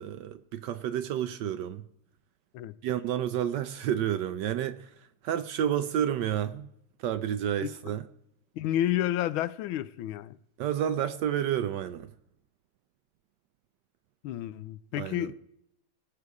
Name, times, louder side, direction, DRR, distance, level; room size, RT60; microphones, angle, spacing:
voice 1, 0.0-1.9 2.8-6.7 7.0-8.1 10.6-12.1 15.0-15.3, right 10 dB, 75° right, 1.0 m, -30 dB
voice 2, 8.6-10.4 14.2-15.3, left 12 dB, 80° left, 1.4 m, -30 dB
18.5 x 6.8 x 4.7 m
omnidirectional pair, 2.2 m